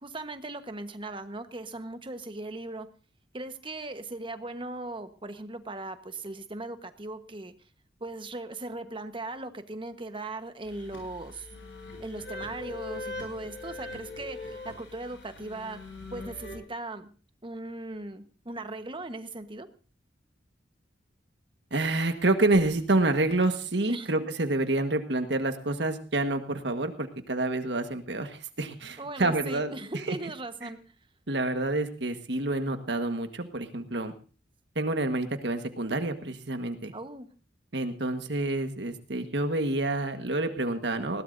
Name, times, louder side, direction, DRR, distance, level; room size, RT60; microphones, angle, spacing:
voice 1, 0.0-2.9 3.3-7.5 8.0-11.5 12.0-15.8 16.1-17.1 17.4-19.7 23.9-24.1 29.0-30.8 36.9-37.3, right 2 dB, 30° right, 9 dB, 1.2 m, -38 dB
sound 1, 10.6-16.6, left 3 dB, 75° left, 8.0 m, -41 dB
voice 2, 21.7-29.7 30.1-30.2 30.6-30.7 31.3-34.1 34.7-36.9 37.7-41.2, right 2 dB, 70° right, 7 dB, 1.5 m, -28 dB
20.5 x 17.0 x 2.7 m, 0.37 s
head